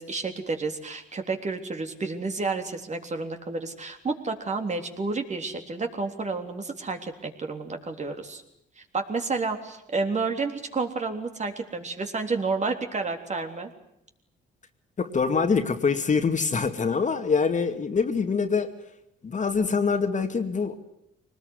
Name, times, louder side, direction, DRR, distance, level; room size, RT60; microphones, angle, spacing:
voice 1, 0.0-8.4 8.8-13.7, right 4 dB, 35° right, 5 dB, 3.5 m, -30 dB
voice 2, 15.0-18.7 19.2-20.8, left 5 dB, 40° left, 7 dB, 2.3 m, -24 dB
23.0 x 20.0 x 9.7 m, 0.78 s
cardioid pair, 90°, 20 cm